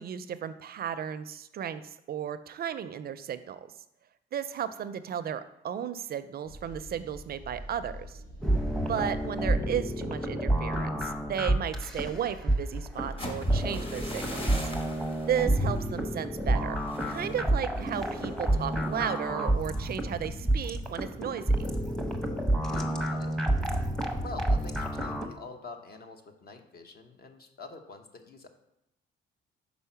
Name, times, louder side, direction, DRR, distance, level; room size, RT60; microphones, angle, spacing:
voice 1, 0.0-3.7 4.3-8.2 8.9-14.7 15.3-16.8 17.1-21.7, right 9 dB, 50° right, 12 dB, 0.4 m, -34 dB
sound 1, 6.4-19.0, equal, 80° left, 2.6 m, -46 dB
sound 2, 8.4-25.3, right 1 dB, 5° left, 0.8 m, -29 dB
sound 3, 13.0-20.9 21.2-21.6 21.9-22.3, left 1 dB, 25° left, 1.2 m, -42 dB
voice 2, 22.5-23.4 24.2-28.5, left 3 dB, 50° left, 5 dB, 0.9 m, -46 dB
5.5 x 4.1 x 5.7 m, 0.83 s
cardioid pair, 90°, 20 cm